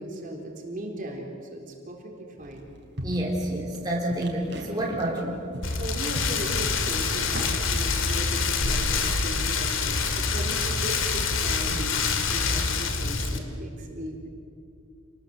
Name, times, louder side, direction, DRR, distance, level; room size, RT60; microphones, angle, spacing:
voice 1, 0.0-2.7 5.8-14.2, right 1 dB, 40° right, 1 dB, 3.9 m, -37 dB
sound 1, 2.4-11.5, equal, 55° right, 3.9 m, -41 dB
voice 2, 3.0-5.4, right 1 dB, 20° right, -3 dB, 3.4 m, -28 dB
Rain, 5.6-13.4, left 4 dB, 75° left, 2.3 m, -26 dB
28.5 x 20.5 x 8.0 m, 2.4 s
head